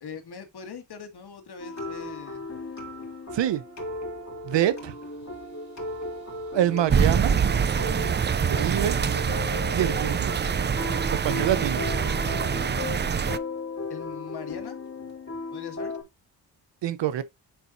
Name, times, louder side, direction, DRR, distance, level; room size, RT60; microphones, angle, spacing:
voice 1, 0.0-2.5 13.9-14.8 15.5-15.9, left 5 dB, 60° left, 2.0 m, -41 dB
sound 1, 1.6-16.0, left 2 dB, 40° left, 3.8 m, -36 dB
voice 2, 3.3-3.6 4.4-4.9 6.5-7.3 8.5-9.1 9.7-10.5 11.2-11.8 16.8-17.2, right 11 dB, 85° right, 0.7 m, -26 dB
sound 2, 6.9-13.4, right 7 dB, 25° right, 0.4 m, -25 dB
10.0 x 4.1 x 2.5 m
cardioid pair, 75°, 43 cm